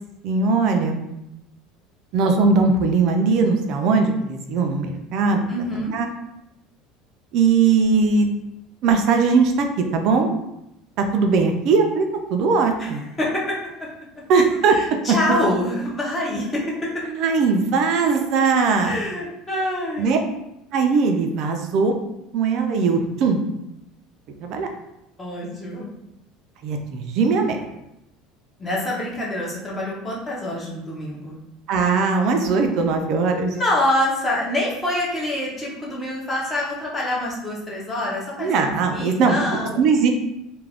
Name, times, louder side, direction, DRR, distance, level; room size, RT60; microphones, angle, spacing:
voice 1, 0.2-1.0 2.1-5.5 5.9-6.1 7.3-8.3 8.8-10.3 11.0-12.1 12.3-13.1 14.3-14.8 17.1-19.0 20.0-20.2 20.7-21.9 22.3-23.4 24.4-24.7 26.6-27.6 31.7-33.5 38.4-39.4 39.8-40.1, right 4 dB, 45° right, 4 dB, 0.3 m, -19 dB
voice 2, 5.5-5.9 12.8-12.9 13.2-13.6 14.7-16.9 18.8-20.2 25.2-25.9 28.6-31.4 33.5-38.6 38.9-39.8, left 1 dB, 15° left, -4 dB, 0.6 m, -26 dB
2.4 x 2.2 x 3.3 m, 0.87 s
cardioid pair, 175°, 0 cm